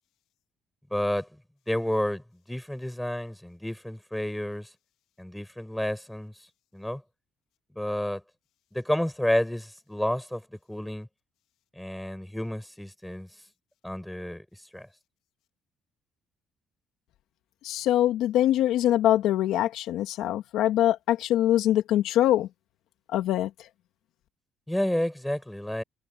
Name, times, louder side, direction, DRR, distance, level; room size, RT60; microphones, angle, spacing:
voice 1, 0.9-1.3 1.7-2.2 2.5-4.7 5.2-6.3 6.7-7.0 7.8-8.2 8.7-10.4 10.7-11.1 11.8-13.3 13.8-14.4 14.7-14.9 24.7-25.8, left 1 dB, 5° left, 7.9 m, -30 dB
voice 2, 17.6-22.5 23.1-23.5, left 12 dB, 80° left, 2.2 m, -23 dB
cardioid pair, 130°, 0 cm